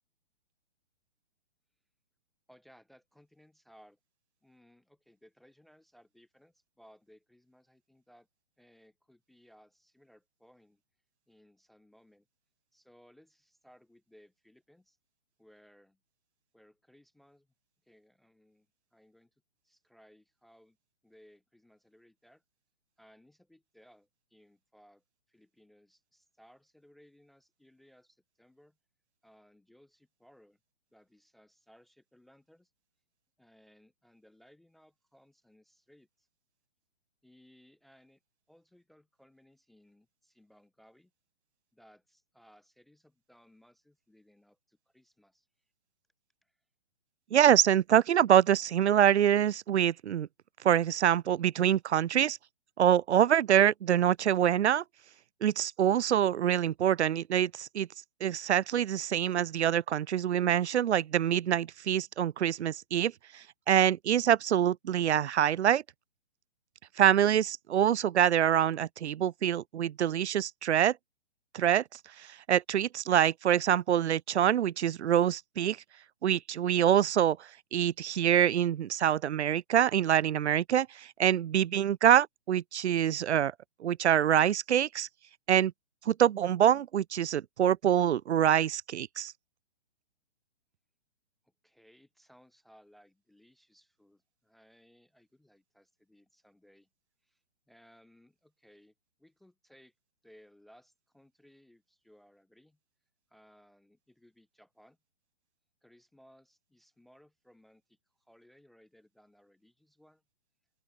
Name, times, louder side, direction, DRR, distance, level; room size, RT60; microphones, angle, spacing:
voice 1, 2.5-4.0 4.4-8.3 8.6-10.8 11.3-12.3 12.7-15.0 15.4-16.0 16.5-17.5 17.8-20.8 21.0-22.4 23.0-28.8 29.2-30.6 30.9-32.7 33.4-36.3 37.2-38.2 38.5-41.1 41.7-45.5 46.4-46.6 91.4-96.9 97.2-99.9 100.2-102.8 103.3-105.0 105.8-110.2, equal, ahead, 0.4 m, -62 dB
voice 2, 47.3-50.3 50.6-52.4 52.8-54.8 55.4-57.9 58.2-65.8 67.0-71.0 71.5-71.8 72.2-75.8 76.2-83.5 83.8-85.1 85.5-85.7 86.1-89.3, right 10 dB, 80° right, 0.6 m, -25 dB
open air
hypercardioid pair, 155°, 33 cm